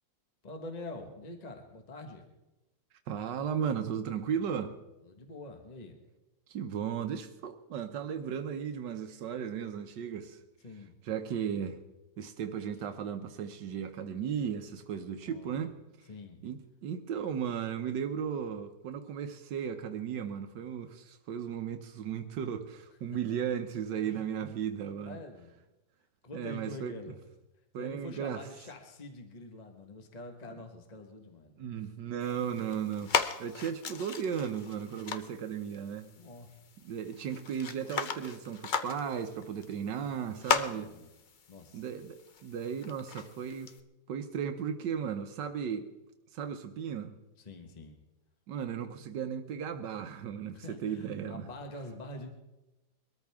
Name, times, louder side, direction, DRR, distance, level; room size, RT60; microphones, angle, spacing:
voice 1, 0.4-2.2 5.0-6.0 10.6-10.9 15.2-15.6 16.1-16.4 23.1-23.2 24.0-24.3 25.0-25.5 26.2-27.2 27.8-31.6 36.1-36.5 40.7-41.1 41.5-41.8 47.4-48.0 50.5-52.3, left 2 dB, 25° left, 4 dB, 1.4 m, -45 dB
voice 2, 3.1-4.7 6.5-10.4 11.0-11.8 12.2-15.8 16.4-25.2 26.3-27.1 27.7-28.5 31.6-36.1 36.8-40.9 41.7-43.7 44.1-45.9 46.3-47.1 48.5-51.5, right 8 dB, 85° right, 7 dB, 1.5 m, -35 dB
sound 1, 32.2-43.8, left 6 dB, 65° left, 0.4 m, -37 dB
22.5 x 13.5 x 3.5 m, 1.0 s
omnidirectional pair, 1.9 m